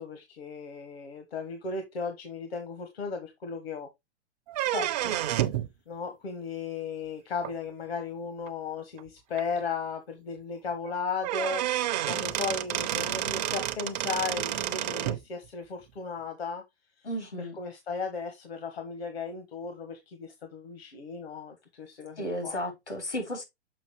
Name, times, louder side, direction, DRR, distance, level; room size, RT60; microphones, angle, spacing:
voice 1, 0.0-3.9 5.9-16.6 17.0-17.1 17.4-22.6, left 5 dB, 60° left, 1.5 m, -36 dB
sound 1, 4.5-5.7 7.4-7.5 8.5-8.6 9.0-9.1 9.4-9.5 10.8-10.9 11.2-15.2, right 13 dB, 40° right, 0.7 m, -30 dB
voice 2, 4.7-5.2 17.0-17.6 22.2-23.4, left 1 dB, 85° left, 4.0 m, -34 dB
6.7 x 5.4 x 3.1 m
figure-of-eight pair, 115°, 34 cm